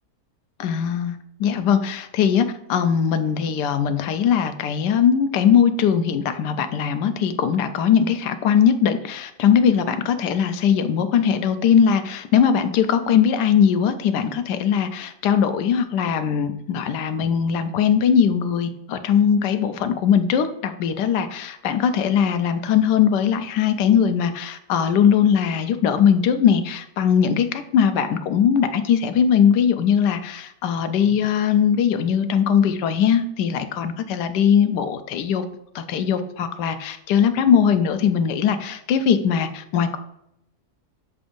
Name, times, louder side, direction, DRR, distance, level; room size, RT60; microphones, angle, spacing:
voice 1, 0.6-35.4 35.7-40.0, left 7 dB, 90° left, 9 dB, 1.2 m, -20 dB
7.2 x 2.6 x 5.1 m, 0.78 s
omnidirectional pair, 1.8 m